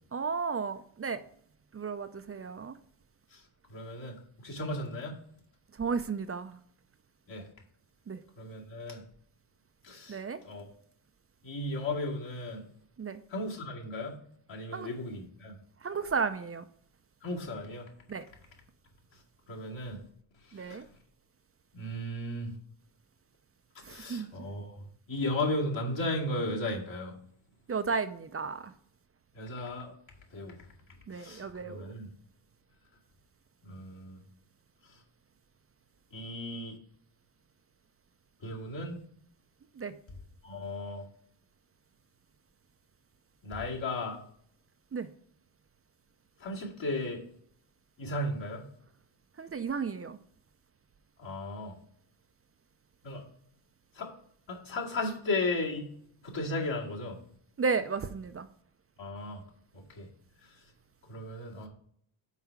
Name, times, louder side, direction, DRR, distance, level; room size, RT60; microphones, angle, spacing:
voice 1, 0.1-1.2 1.7-2.8 5.8-6.6 8.1-8.2 10.1-10.4 13.0-13.2 14.7-14.9 15.8-16.7 18.1-18.2 20.5-20.8 23.8-24.3 27.7-28.7 31.1-31.9 39.8-39.9 44.9-45.1 49.4-50.2 57.6-58.5, right 5 dB, 30° right, 0.5 m, -33 dB
voice 2, 3.7-5.2 7.3-7.5 8.4-9.0 9.8-10.6 11.4-12.6 13.3-14.1 14.5-15.6 17.2-17.9 19.5-20.0 20.5-20.8 21.7-22.6 23.9-27.1 29.3-29.9 30.3-30.6 31.1-32.1 33.6-34.2 34.9-35.0 36.1-36.8 38.4-39.0 40.4-41.0 43.4-44.2 46.4-47.2 48.0-48.7 51.2-51.7 53.0-53.2 53.9-54.1 54.5-55.9 56.2-57.2 59.0-59.4 59.9-60.1 60.4-60.5 61.1-61.7, left 2 dB, 65° left, 2.3 m, -35 dB
5.7 x 4.5 x 5.8 m
cardioid pair, 70°, 50 cm